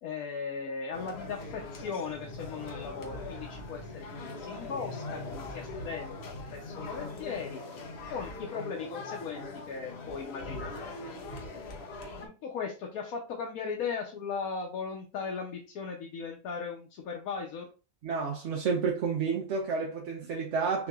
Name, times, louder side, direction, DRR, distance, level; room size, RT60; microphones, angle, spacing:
voice 1, 0.0-7.6 8.1-10.9 12.2-17.7, left 5 dB, 90° left, 1.2 m, -38 dB
sound 1, 0.9-12.3, left 2 dB, 55° left, 1.0 m, -41 dB
voice 2, 18.0-20.9, right 5 dB, 60° right, 0.9 m, -30 dB
5.7 x 2.8 x 2.3 m
omnidirectional pair, 1.5 m